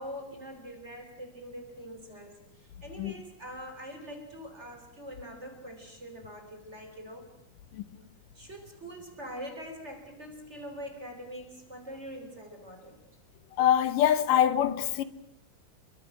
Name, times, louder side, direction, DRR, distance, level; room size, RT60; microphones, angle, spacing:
voice 1, 0.0-7.3 8.3-13.0, equal, 20° right, 3.8 m, -43 dB
voice 2, 13.5-15.0, left 10 dB, 85° left, 2.7 m, -24 dB
28.5 x 23.5 x 6.1 m
omnidirectional pair, 3.7 m